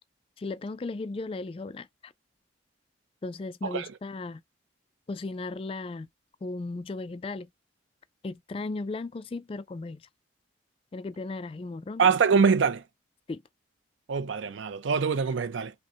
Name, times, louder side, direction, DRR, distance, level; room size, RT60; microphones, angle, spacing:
voice 1, 0.4-2.1 3.2-4.4 5.1-6.1 6.4-7.5 8.2-10.0 10.9-12.0 13.3-13.4, left 3 dB, 30° left, 0.3 m, -36 dB
voice 2, 12.0-12.8 14.1-15.7, right 5 dB, 85° right, 0.5 m, -24 dB
5.0 x 2.1 x 2.7 m
head